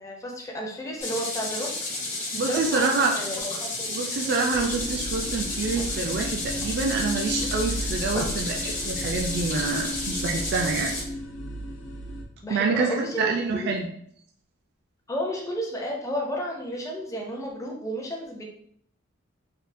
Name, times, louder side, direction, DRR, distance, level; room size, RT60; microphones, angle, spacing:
voice 1, 0.0-1.7 2.4-4.0 8.1-8.2 12.4-13.7 15.1-18.4, equal, 15° left, -1 dB, 0.5 m, -32 dB
sound 1, 1.0-11.0, left 2 dB, 40° left, 0.9 m, -32 dB
voice 2, 2.3-3.1 3.9-11.0 12.5-13.9, right 4 dB, 55° right, 1 dB, 0.3 m, -27 dB
sound 2, 4.5-12.2, equal, 80° left, 0.5 m, -34 dB
3.4 x 2.3 x 2.5 m, 0.66 s
head